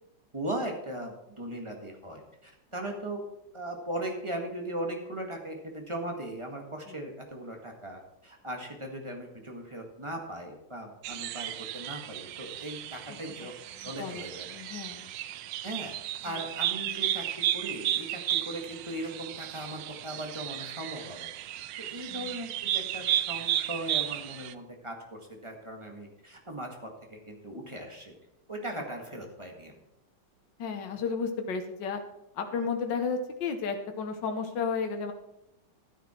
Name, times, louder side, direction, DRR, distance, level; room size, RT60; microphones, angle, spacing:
voice 1, 0.3-3.2 3.5-13.5 13.8-14.5 15.6-15.9 16.2-17.2 17.5-21.3 21.9-28.1 28.5-29.7, right 1 dB, 15° right, 2 dB, 1.7 m, -38 dB
sound 1, 11.0-24.5, right 12 dB, 85° right, 1.3 m, -34 dB
voice 2, 13.1-13.5 13.8-14.2 14.5-15.1 16.2-16.4 22.1-22.4 30.6-32.0 32.3-35.1, left 5 dB, 80° left, 5 dB, 1.7 m, -33 dB
12.5 x 9.9 x 4.4 m, 0.86 s
omnidirectional pair, 2.0 m